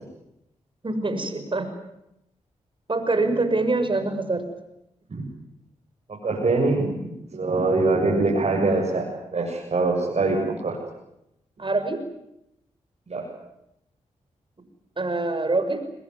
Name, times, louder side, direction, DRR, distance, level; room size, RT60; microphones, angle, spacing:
voice 1, 0.8-1.7 2.9-4.5 11.6-12.0 15.0-15.8, right 2 dB, 40° right, 9 dB, 6.2 m, -24 dB
voice 2, 6.2-7.0 7.3-9.0 9.3-10.8 13.1-13.3, right 3 dB, 55° right, -3 dB, 7.7 m, -23 dB
23.0 x 21.0 x 9.7 m, 0.83 s
supercardioid pair, 40°, 13 cm